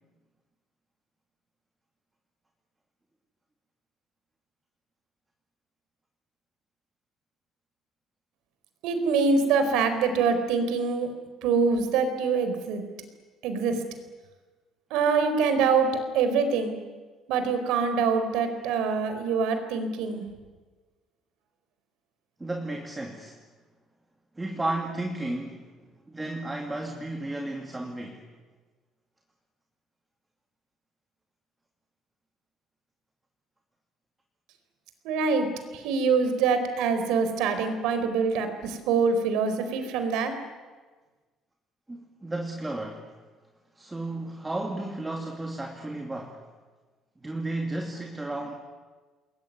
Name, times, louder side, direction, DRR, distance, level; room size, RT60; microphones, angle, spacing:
voice 1, 8.8-11.1 11.4-12.8 13.4-13.8 14.9-16.8 17.3-20.2 35.0-35.5 35.7-40.3, right 5 dB, 90° right, 8 dB, 4.6 m, -25 dB
voice 2, 22.4-23.4 24.4-25.7 26.1-28.2 41.9-43.1 43.8-46.4 47.2-48.6, right 2 dB, 10° right, 2 dB, 2.6 m, -33 dB
28.0 x 21.5 x 9.6 m, 1.3 s
cardioid pair, 150°, 0 cm